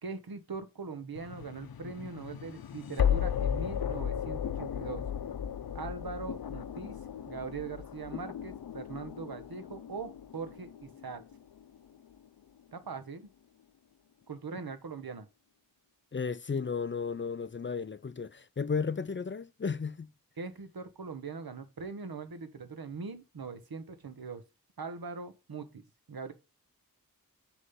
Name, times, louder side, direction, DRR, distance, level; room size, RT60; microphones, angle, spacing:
voice 1, 0.0-5.0 5.7-7.0 7.3-11.2 12.7-13.3 14.3-15.3 20.4-24.4 24.8-25.8 26.1-26.3, right 4 dB, 90° right, 1.0 m, -41 dB
sound 1, 1.2-12.2, left 8 dB, 85° left, 0.5 m, -35 dB
voice 2, 16.1-20.1, left 5 dB, 35° left, 0.4 m, -34 dB
6.6 x 3.1 x 5.4 m
wide cardioid pair, 50°, 35 cm